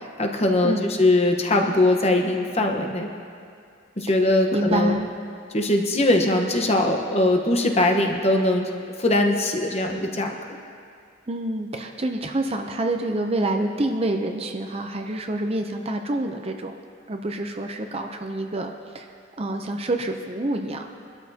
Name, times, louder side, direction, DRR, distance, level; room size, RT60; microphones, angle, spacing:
voice 1, 0.2-3.1 4.0-5.0 5.5-8.7 9.0-10.4, left 1 dB, 30° left, 2 dB, 1.1 m, -21 dB
voice 2, 4.5-5.1 11.3-16.8 17.1-19.1 19.4-20.9, right 1 dB, 30° right, 4 dB, 0.6 m, -27 dB
23.5 x 12.5 x 2.8 m, 2.3 s
head